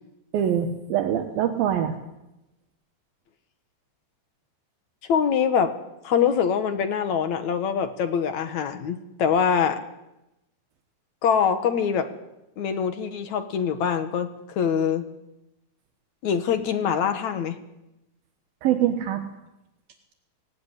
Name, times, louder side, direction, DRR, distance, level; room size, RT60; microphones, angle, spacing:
voice 1, 0.3-1.9 18.6-19.2, right 10 dB, 75° right, 6 dB, 3.0 m, -24 dB
voice 2, 5.1-5.7 6.0-9.8 11.2-12.1 12.6-15.1 16.2-17.6, left 7 dB, 60° left, 9 dB, 2.2 m, -24 dB
18.5 x 17.5 x 9.9 m, 0.92 s
omnidirectional pair, 4.3 m